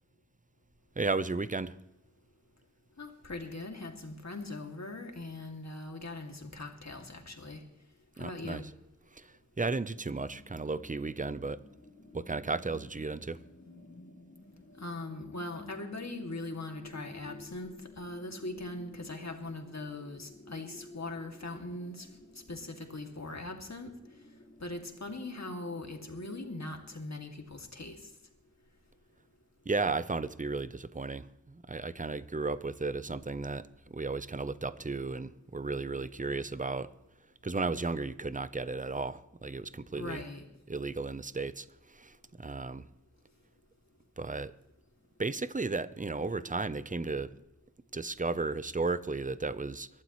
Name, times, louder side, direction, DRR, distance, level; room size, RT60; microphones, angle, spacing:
voice 1, 1.0-1.7 8.2-8.7 9.1-11.6 12.1-13.4 29.7-36.9 37.4-40.2 40.7-42.9 44.2-44.5 45.2-47.4 47.9-49.9, right 3 dB, 25° right, 15 dB, 0.7 m, -34 dB
voice 2, 3.0-7.6 8.2-8.6 14.8-22.1 22.3-23.9 24.6-28.1 39.9-40.4, left 2 dB, 60° left, 3 dB, 2.4 m, -41 dB
sound 1, 10.1-26.7, left 2 dB, 35° left, 1.5 m, -53 dB
23.5 x 12.0 x 3.1 m, 0.87 s
wide cardioid pair, 60°, 31 cm